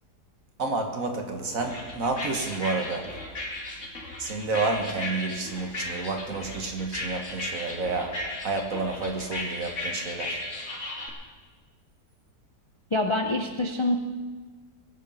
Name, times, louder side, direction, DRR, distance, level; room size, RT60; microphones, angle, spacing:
voice 1, 0.6-3.2 4.2-10.4, right 3 dB, 55° right, 4 dB, 1.8 m, -30 dB
sound 1, 1.6-11.1, left 1 dB, 50° left, 2.1 m, -36 dB
voice 2, 12.9-14.0, left 2 dB, 30° left, 3 dB, 0.5 m, -25 dB
20.0 x 8.3 x 5.5 m, 1.4 s
omnidirectional pair, 1.7 m